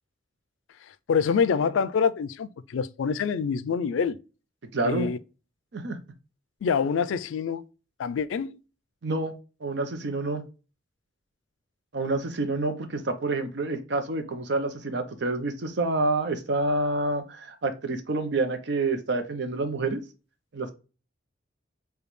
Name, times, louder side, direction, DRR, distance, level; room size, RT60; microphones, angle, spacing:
voice 1, 0.9-4.2 4.8-5.2 6.6-7.7 8.0-8.6, left 6 dB, 85° left, 0.3 m, -26 dB
voice 2, 4.7-5.1 5.7-6.0 9.0-9.3 9.6-10.4 11.9-20.0 20.5-20.7, right 2 dB, 60° right, 0.6 m, -28 dB
5.0 x 2.3 x 3.1 m
head